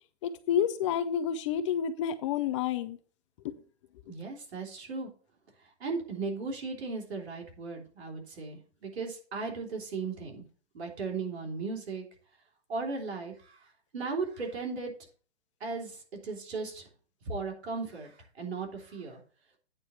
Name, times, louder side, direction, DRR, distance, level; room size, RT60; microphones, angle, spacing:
voice 1, 0.2-3.0 3.4-3.5, left 9 dB, 30° left, 12 dB, 0.5 m, -29 dB
voice 2, 4.0-5.1 5.8-10.4 10.7-12.0 12.7-14.9 15.6-16.9 17.2-19.2, right 4 dB, 70° right, 1 dB, 3.6 m, -36 dB
9.0 x 4.4 x 6.8 m, 0.40 s
hypercardioid pair, 145°, 33 cm